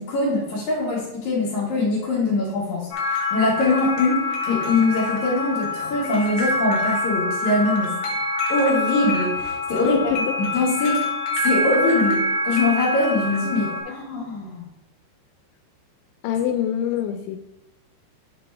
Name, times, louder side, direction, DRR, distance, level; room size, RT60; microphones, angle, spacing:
voice 1, 0.0-7.9 8.5-10.1 10.4-11.0 11.4-14.6, left 2 dB, 55° left, -5 dB, 2.3 m, -23 dB
sound 1, 2.9-13.8, left 2 dB, 70° left, 3.0 m, -25 dB
voice 2, 16.2-17.4, left 10 dB, 90° left, 5 dB, 3.0 m, -24 dB
10.5 x 4.1 x 3.4 m, 0.90 s
omnidirectional pair, 5.3 m